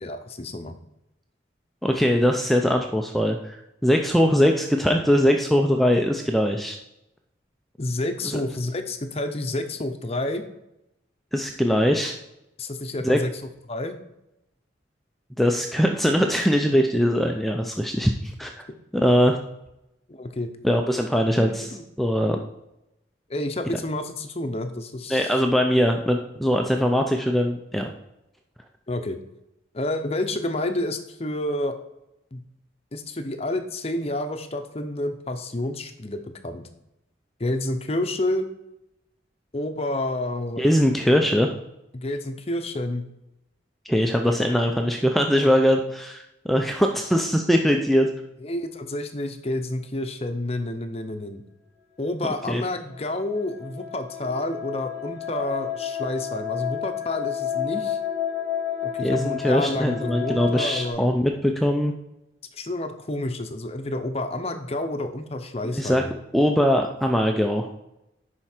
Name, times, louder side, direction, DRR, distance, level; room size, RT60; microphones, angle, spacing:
voice 1, 0.0-0.7 7.8-10.4 12.6-13.3 13.7-14.0 20.1-20.5 21.4-21.8 23.3-25.3 28.9-29.2 29.7-31.7 32.3-32.4 32.9-36.7 37.4-38.5 39.5-40.6 41.9-43.0 48.4-51.4 52.0-58.0 58.8-61.0 62.5-66.1, left 1 dB, 30° left, 7 dB, 0.7 m, -29 dB
voice 2, 1.8-6.8 8.2-8.4 11.3-12.1 13.0-13.2 15.4-18.6 18.9-19.4 20.6-21.7 22.0-22.4 25.1-27.9 40.6-41.5 43.9-48.1 52.5-52.6 59.0-61.9 65.7-66.0 66.3-67.7, equal, ahead, 3 dB, 0.5 m, -21 dB
sound 1, 52.9-60.9, left 9 dB, 50° right, 3.5 m, -31 dB
10.5 x 4.5 x 4.4 m, 0.87 s
head